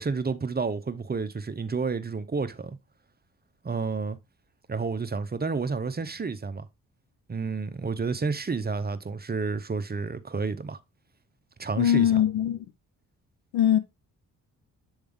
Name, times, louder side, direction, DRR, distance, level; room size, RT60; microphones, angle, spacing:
voice 1, 0.0-2.8 3.6-4.2 4.7-6.7 7.3-10.8 11.6-12.1, right 4 dB, 25° right, 0.8 m, -30 dB
voice 2, 11.8-12.6 13.5-13.8, left 10 dB, 80° left, 0.8 m, -21 dB
8.0 x 3.5 x 3.6 m
supercardioid pair, 55°, 38 cm